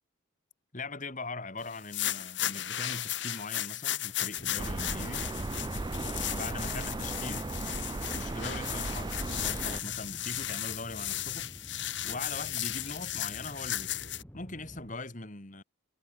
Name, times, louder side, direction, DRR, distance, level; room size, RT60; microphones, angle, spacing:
voice 1, 0.7-5.3 6.3-7.5 8.1-11.5 12.0-14.0 14.3-15.6, left 3 dB, 35° left, 2.2 m, -41 dB
sound 1, 1.7-14.2, left 13 dB, 55° left, 3.2 m, -35 dB
sound 2, 4.4-14.9, equal, 10° left, 4.4 m, -49 dB
sound 3, 4.6-9.8, right 2 dB, 20° right, 0.4 m, -36 dB
head